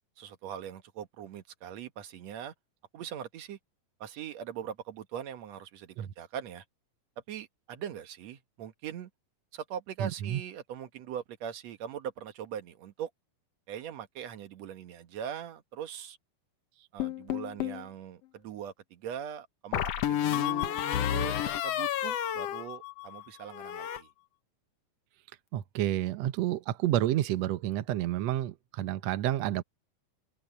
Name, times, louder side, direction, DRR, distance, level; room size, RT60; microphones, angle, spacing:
voice 1, 0.2-2.5 2.9-3.6 4.0-6.6 7.3-9.1 9.5-13.1 13.7-16.2 16.9-21.4 21.6-24.1, right 9 dB, 60° right, 2.1 m, -41 dB
voice 2, 10.0-10.4 25.5-29.6, right 13 dB, 80° right, 1.5 m, -30 dB
sound 1, 17.0-17.8 19.7-23.2 23.5-24.0, left 11 dB, 75° left, 1.5 m, -31 dB
open air
omnidirectional pair, 4.2 m